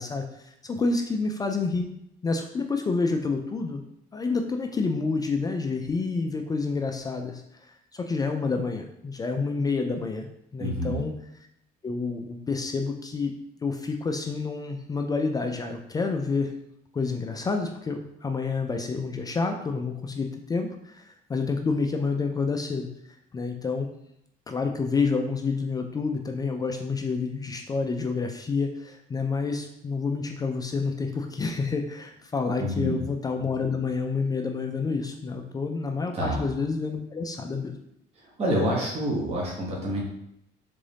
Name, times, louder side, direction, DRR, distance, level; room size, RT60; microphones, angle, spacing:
voice 1, 0.0-1.8 2.2-3.8 4.1-10.3 10.5-11.1 11.8-13.3 13.6-16.5 16.9-22.9 23.3-23.9 24.5-37.8, left 4 dB, 20° left, 4 dB, 0.3 m, -28 dB
voice 2, 10.6-10.9 32.6-33.0 36.1-36.4 38.4-40.0, equal, 35° right, -4 dB, 1.1 m, -27 dB
3.7 x 2.6 x 3.3 m, 0.77 s
cardioid pair, 110°, 17 cm